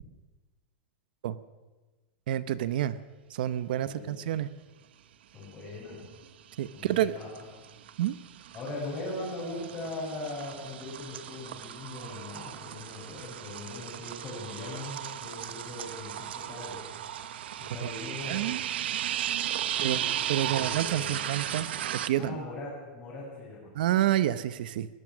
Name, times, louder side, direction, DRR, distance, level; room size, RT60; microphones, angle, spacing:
voice 1, 2.3-3.0 3.3-4.5 6.6-7.1 8.0-8.1 18.3-18.6 19.8-20.0 20.3-21.7 22.1-22.4 23.7-24.9, right 12 dB, 60° right, 15 dB, 0.9 m, -28 dB
voice 2, 3.8-4.1 5.3-6.0 6.7-7.5 8.5-16.8 17.6-18.4 19.7-20.1 20.4-21.5 22.1-23.7, left 2 dB, 15° left, -8 dB, 6.8 m, -40 dB
sound 1, 5.7-6.3 6.6-22.1, right 11 dB, 85° right, 1.3 m, -36 dB
22.0 x 20.0 x 6.2 m, 1.2 s
supercardioid pair, 180°, 6 cm